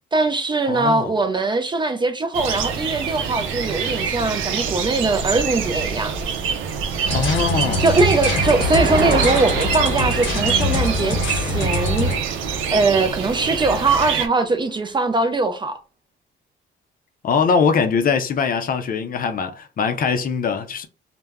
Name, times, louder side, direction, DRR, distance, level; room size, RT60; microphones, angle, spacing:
voice 1, 0.1-6.2 7.8-12.1 12.7-15.8, right 3 dB, 25° right, 0.4 m, -21 dB
voice 2, 0.7-1.1 7.1-7.9 17.2-20.9, left 5 dB, 45° left, 0.5 m, -22 dB
sound 1, 2.3-14.3, right 6 dB, 85° right, 0.5 m, -26 dB
Motor vehicle (road), 6.9-14.7, right 3 dB, 55° right, 0.8 m, -32 dB
sound 2, 7.0-12.2, left 2 dB, 80° left, 0.7 m, -24 dB
2.1 x 2.0 x 3.4 m
cardioid pair, 90°, 20 cm